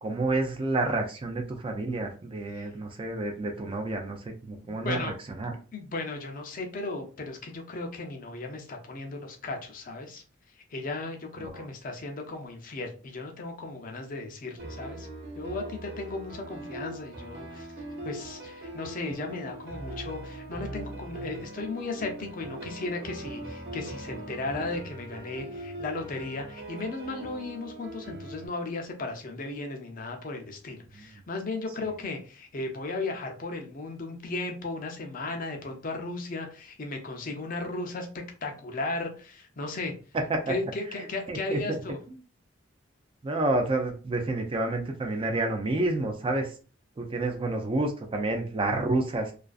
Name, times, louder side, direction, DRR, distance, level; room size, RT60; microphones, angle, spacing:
voice 1, 0.0-5.6 11.4-11.7 30.9-31.1 40.1-40.6 41.0-41.8 43.2-46.5 47.0-49.3, right 2 dB, 25° right, 4 dB, 0.3 m, -29 dB
voice 2, 4.5-5.1 5.7-10.2 10.7-15.1 15.4-17.7 18.1-39.9 40.5-42.0, left 3 dB, 45° left, 3 dB, 0.5 m, -36 dB
sound 1, 14.6-28.5, right 1 dB, 55° right, 0.8 m, -41 dB
2.4 x 2.3 x 2.3 m, 0.37 s
head